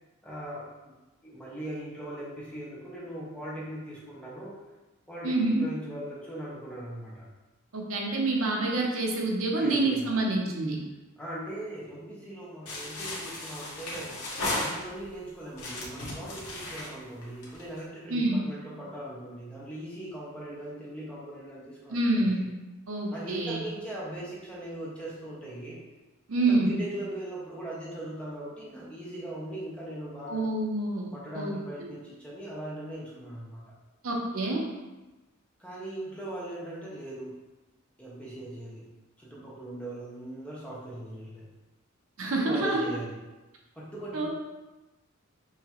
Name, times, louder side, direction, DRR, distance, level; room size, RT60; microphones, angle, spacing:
voice 1, 0.2-0.9 1.2-4.5 5.1-7.3 9.6-10.1 11.2-14.2 14.5-22.4 23.1-25.8 26.5-30.5 31.1-33.7 35.6-37.4 38.0-38.9 39.2-41.5 42.4-43.1 43.7-44.3, right 1 dB, 5° left, -7 dB, 1.0 m, -39 dB
voice 2, 5.2-5.6 7.7-10.8 18.1-18.4 21.9-22.4 22.9-23.6 26.3-26.8 30.3-31.1 31.4-31.9 34.0-34.6 42.2-42.9 44.1-44.3, right 2 dB, 65° right, 0 dB, 0.7 m, -27 dB
sound 1, 12.7-15.1 15.5-17.8, left 1 dB, 85° left, 1.2 m, -35 dB
5.7 x 2.9 x 3.0 m, 1.1 s
head